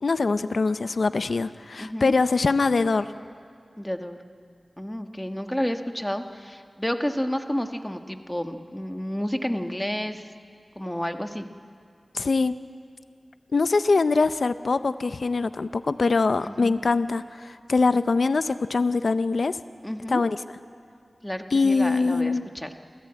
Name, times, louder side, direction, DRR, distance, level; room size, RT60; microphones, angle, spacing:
voice 1, 0.0-3.1 12.1-12.6 13.5-19.6 20.1-20.4 21.5-22.5, left 4 dB, 80° left, 12 dB, 0.6 m, -23 dB
voice 2, 1.8-2.1 3.8-4.2 4.8-10.2 10.7-11.4 16.4-16.8 19.8-20.2 21.2-22.7, equal, 10° left, 6 dB, 1.4 m, -30 dB
28.0 x 14.0 x 8.8 m, 2.3 s
wide cardioid pair, 65°, 0 cm